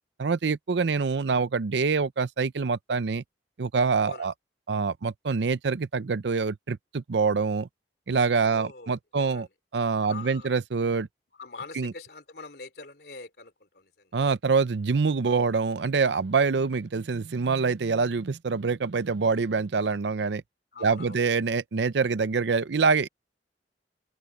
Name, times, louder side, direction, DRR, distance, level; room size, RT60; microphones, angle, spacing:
voice 1, 0.2-3.2 3.6-4.3 4.7-7.7 8.1-9.5 9.7-11.1 11.8-11.9 14.1-20.4 20.8-23.1, right 4 dB, 75° right, 0.5 m, -25 dB
voice 2, 8.4-9.5 10.0-10.5 11.4-14.2 20.7-21.2, left 3 dB, 60° left, 3.5 m, -44 dB
open air
head